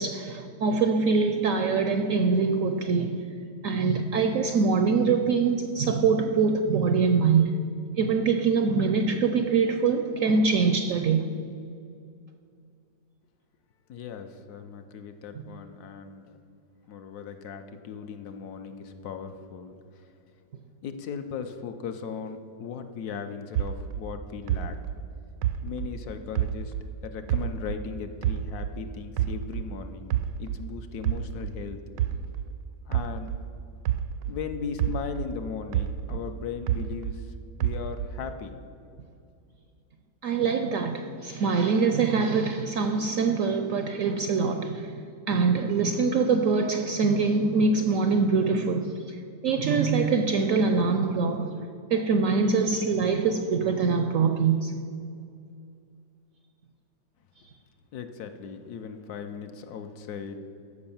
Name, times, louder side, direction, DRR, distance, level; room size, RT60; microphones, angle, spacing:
voice 1, 0.0-3.2 3.6-7.5 8.0-11.3 15.4-15.5 40.2-45.0 45.3-51.5 51.9-54.7, right 5 dB, 70° right, 7 dB, 0.8 m, -24 dB
voice 2, 13.9-16.4 16.9-20.0 20.8-24.8 25.6-26.7 27.0-30.1 30.4-31.8 32.9-33.3 34.3-38.6 57.9-60.4, left 6 dB, 70° left, 7 dB, 1.2 m, -37 dB
sound 1, 23.5-26.9 27.3-29.8 30.1-34.4 34.8-37.3 37.6-38.3, right 11 dB, 85° right, 1.2 m, -29 dB
13.5 x 5.2 x 7.0 m, 2.5 s
omnidirectional pair, 1.9 m